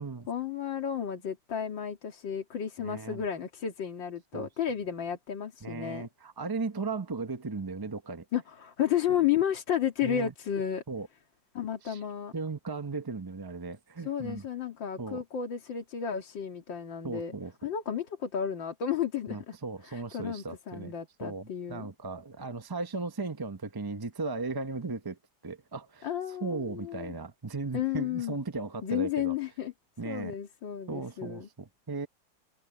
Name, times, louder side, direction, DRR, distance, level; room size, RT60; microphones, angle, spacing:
voice 1, 0.3-6.1 8.3-10.8 11.5-12.3 14.0-17.3 17.6-19.6 19.8-21.9 26.0-27.2 27.7-28.4 28.8-29.7 30.0-31.5, left 9 dB, 85° left, 2.8 m, -32 dB
voice 2, 2.8-3.2 4.3-4.5 5.6-8.2 10.0-10.3 10.9-11.1 11.8-12.0 12.3-14.5 15.0-15.2 17.0-17.5 19.3-20.9 21.2-29.3 30.0-30.4 30.9-32.1, right 3 dB, 25° right, 0.4 m, -36 dB
omnidirectional pair, 2.0 m